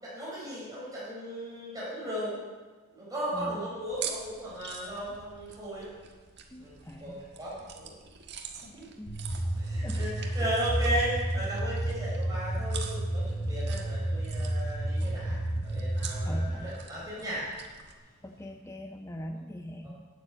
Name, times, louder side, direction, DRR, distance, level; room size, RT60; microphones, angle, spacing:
voice 1, 0.0-2.4 2.9-5.9 6.6-6.7 7.0-8.0 8.6-8.9 9.5-17.5, right 1 dB, 15° right, -8 dB, 4.3 m, -36 dB
voice 2, 3.3-3.7 6.5-7.2 9.0-9.2 9.8-10.1 10.4-10.5 16.2-16.7 18.2-20.1, equal, 10° left, 4 dB, 0.5 m, -42 dB
sound 1, 3.9-18.0, right 7 dB, 50° right, 1.4 m, -45 dB
sound 2, 9.1-16.5, right 1 dB, 60° left, 3.8 m, -31 dB
11.5 x 7.6 x 8.3 m, 1.4 s
head